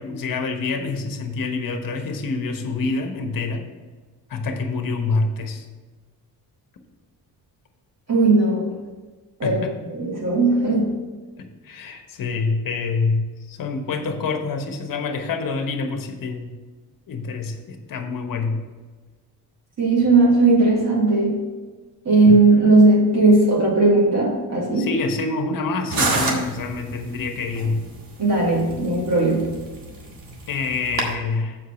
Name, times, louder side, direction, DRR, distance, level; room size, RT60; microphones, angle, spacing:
voice 1, 0.0-3.6 4.3-5.6 9.4-9.7 11.4-16.5 17.1-18.6 24.7-27.8 30.5-31.6, left 4 dB, 55° left, 5 dB, 1.3 m, -26 dB
voice 2, 8.1-8.8 9.4-9.6 9.9-10.9 19.8-21.4 22.0-24.9 28.2-29.5, right 2 dB, 40° right, -4 dB, 2.5 m, -17 dB
sound 1, 25.9-31.1, right 3 dB, 55° right, 1.9 m, -29 dB
7.7 x 4.8 x 7.1 m, 1.3 s
cardioid pair, 110°, 41 cm